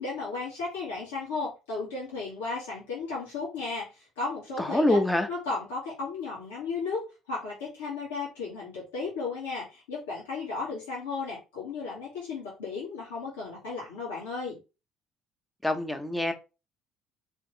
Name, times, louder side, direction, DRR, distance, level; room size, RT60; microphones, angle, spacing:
voice 1, 0.0-5.0 5.3-7.0 7.3-14.6, left 4 dB, 85° left, 2.5 m, -34 dB
voice 2, 4.6-5.3 15.6-16.3, left 1 dB, 5° left, 1.1 m, -25 dB
4.3 x 3.5 x 3.4 m
hypercardioid pair, 65°, 0 cm